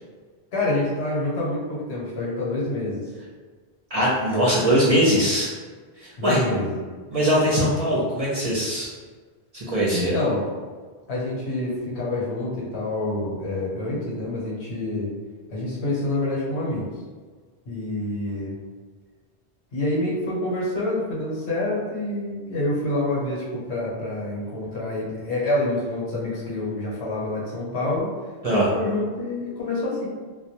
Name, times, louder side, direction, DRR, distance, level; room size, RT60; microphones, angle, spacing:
voice 1, 0.5-3.0 6.2-6.8 9.9-10.5 11.1-15.1 15.5-16.9 17.7-18.6 19.7-28.1 28.5-30.1, left 2 dB, 85° left, -6 dB, 1.1 m, -27 dB
voice 2, 3.9-5.5 6.0-6.4 7.1-8.9 9.5-10.1 28.4-28.7, equal, 45° right, -7 dB, 0.6 m, -21 dB
2.2 x 2.2 x 2.8 m, 1.5 s
omnidirectional pair, 1.1 m